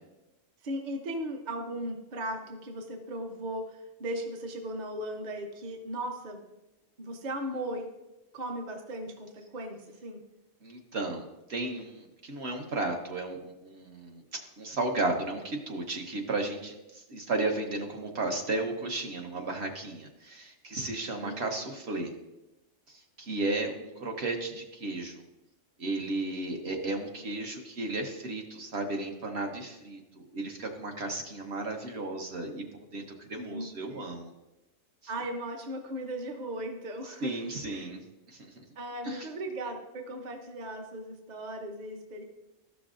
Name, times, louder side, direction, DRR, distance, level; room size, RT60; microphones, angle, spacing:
voice 1, 0.6-6.4 7.0-7.9 8.3-10.2 21.2-21.6 33.5-34.0 35.1-37.9 38.8-42.2, right 1 dB, 40° right, 3 dB, 0.7 m, -37 dB
voice 2, 10.6-22.1 22.9-25.2 25.8-32.6 32.9-34.3 37.2-38.0 38.3-38.6 39.0-39.3, right 2 dB, 60° right, 2 dB, 1.2 m, -34 dB
13.0 x 5.9 x 2.5 m, 0.98 s
omnidirectional pair, 1.3 m